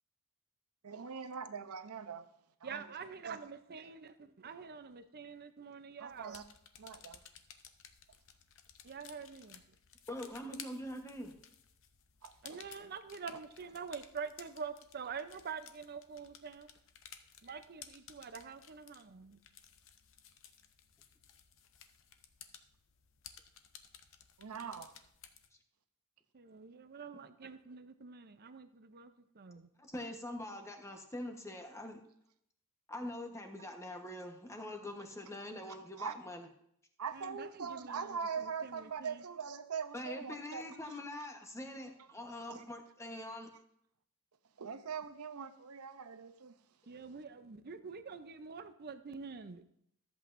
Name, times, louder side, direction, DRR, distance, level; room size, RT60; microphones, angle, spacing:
voice 1, 0.8-2.3 2.6-2.9 3.2-3.4 6.0-6.4 6.8-7.2 12.2-12.6 13.3-13.4 24.4-24.9 36.0-36.2 37.0-40.7 42.5-42.6 44.6-46.5, right 6 dB, 75° right, 0.7 m, -42 dB
voice 2, 2.6-6.4 8.8-9.6 12.4-16.7 17.4-19.4 26.3-29.7 37.1-39.2 46.9-49.6, right 5 dB, 45° right, 0.6 m, -46 dB
sound 1, 6.1-25.5, left 8 dB, 60° left, 0.8 m, -57 dB
voice 3, 10.1-11.3 29.8-32.0 32.9-36.5 39.9-43.5, left 1 dB, 15° left, 1.1 m, -44 dB
14.0 x 7.9 x 2.6 m
head